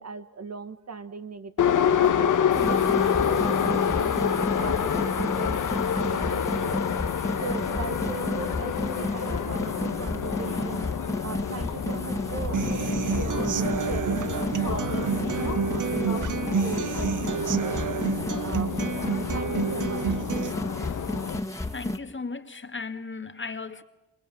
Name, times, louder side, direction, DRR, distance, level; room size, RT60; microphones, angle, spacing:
voice 1, 0.0-2.0 2.5-6.9 7.4-10.9 11.2-17.8 18.4-20.2, right 5 dB, 55° right, 1.6 m, -38 dB
Subway metro underground, 1.6-21.4, left 8 dB, 75° left, 1.4 m, -28 dB
sound 1, 2.5-22.0, left 1 dB, 10° left, 2.4 m, -32 dB
Human voice / Acoustic guitar, 12.5-20.5, right 7 dB, 70° right, 1.0 m, -29 dB
voice 2, 21.7-23.8, left 4 dB, 40° left, 1.9 m, -36 dB
27.5 x 26.5 x 7.4 m
supercardioid pair, 45°, 31 cm